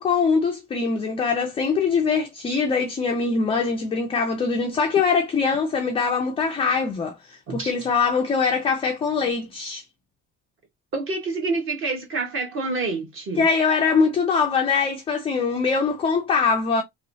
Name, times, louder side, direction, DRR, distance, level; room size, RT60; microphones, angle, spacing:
voice 1, 0.0-9.8 13.4-16.8, left 5 dB, 15° left, 0.4 m, -22 dB
voice 2, 10.9-13.5, right 3 dB, 35° right, 1.2 m, -27 dB
3.0 x 3.0 x 2.7 m
cardioid pair, 165°, 34 cm